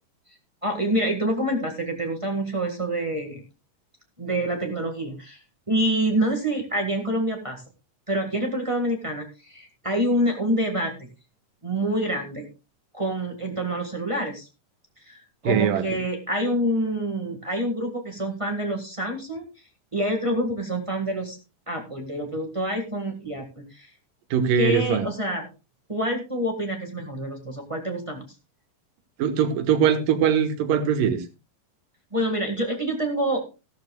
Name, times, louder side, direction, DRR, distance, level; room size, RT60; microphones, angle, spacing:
voice 1, 0.6-3.4 4.2-5.4 5.7-7.6 8.1-11.1 11.6-12.5 12.9-14.5 15.1-19.5 19.9-21.4 21.7-23.9 24.5-25.5 25.9-28.2 32.1-33.4, right 1 dB, 45° right, 2 dB, 0.4 m, -27 dB
voice 2, 15.4-15.8 24.3-25.1 29.2-31.2, right 8 dB, 80° right, 7 dB, 3.0 m, -21 dB
14.5 x 13.0 x 2.3 m, 0.28 s
omnidirectional pair, 3.8 m